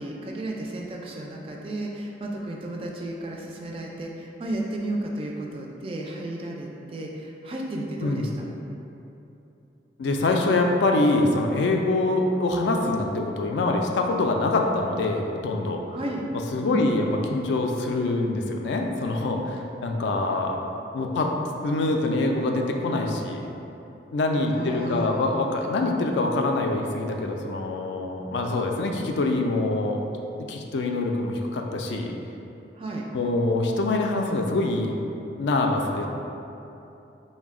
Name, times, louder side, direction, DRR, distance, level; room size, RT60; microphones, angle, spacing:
voice 1, 0.0-8.5 15.9-16.3 16.6-17.0 24.3-25.4 32.8-33.0, right 1 dB, 30° right, -1 dB, 0.3 m, -33 dB
voice 2, 10.0-15.8 16.5-17.0 17.3-20.7 20.9-21.3 21.6-23.5 24.1-30.0 30.5-32.1 33.1-35.1 35.4-36.1, left 2 dB, 75° left, 2 dB, 0.3 m, -25 dB
4.0 x 2.1 x 3.5 m, 2.9 s
head